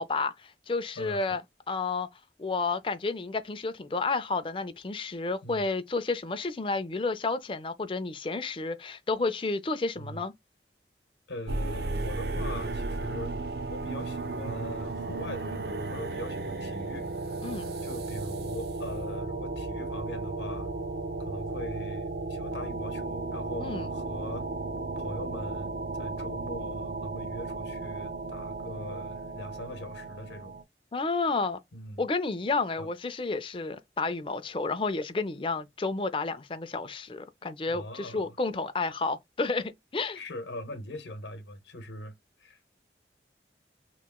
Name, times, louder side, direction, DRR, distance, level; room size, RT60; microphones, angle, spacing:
voice 1, 0.0-1.4 1.7-2.1 2.4-10.3 17.4-17.7 23.6-23.9 30.9-31.6 32.0-40.2, left 3 dB, 30° left, 0.4 m, -31 dB
voice 2, 1.0-1.4 5.4-5.6 10.0-10.2 11.3-13.3 13.7-17.1 17.8-20.7 21.2-24.5 25.0-30.6 31.7-32.0 32.8-32.9 37.7-38.4 40.1-42.6, left 1 dB, 85° left, 0.8 m, -41 dB
sound 1, 11.5-30.6, right 3 dB, 65° right, 0.5 m, -34 dB
3.0 x 2.4 x 3.5 m
head